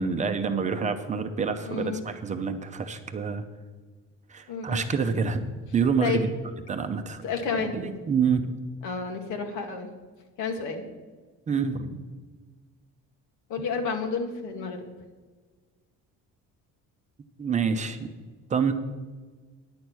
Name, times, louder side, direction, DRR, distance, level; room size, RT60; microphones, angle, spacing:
voice 1, 0.0-3.4 4.3-6.2 6.7-7.2 7.7-8.5 11.5-12.0 17.4-18.1 18.5-18.7, right 5 dB, 25° right, 7 dB, 0.7 m, -27 dB
voice 2, 1.6-2.0 4.5-4.8 6.0-6.2 7.2-7.7 8.8-9.9 10.4-10.8 13.5-14.8, left 5 dB, 85° left, 4 dB, 1.9 m, -30 dB
10.5 x 8.5 x 6.3 m, 1.4 s
cardioid pair, 165°, 30 cm